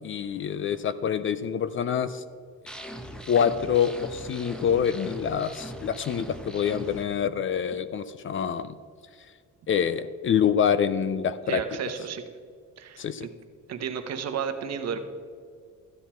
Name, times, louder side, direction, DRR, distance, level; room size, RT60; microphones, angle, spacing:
voice 1, 0.0-2.2 3.3-8.7 9.7-11.6 13.0-13.3, left 8 dB, 40° left, 14 dB, 0.4 m, -26 dB
sound 1, 2.7-7.0, equal, 5° left, 0.8 m, -40 dB
voice 2, 11.5-12.2 12.8-13.3 13.7-15.0, right 7 dB, 55° right, 8 dB, 1.0 m, -32 dB
13.0 x 8.1 x 4.4 m, 2.1 s
cardioid pair, 125°, 32 cm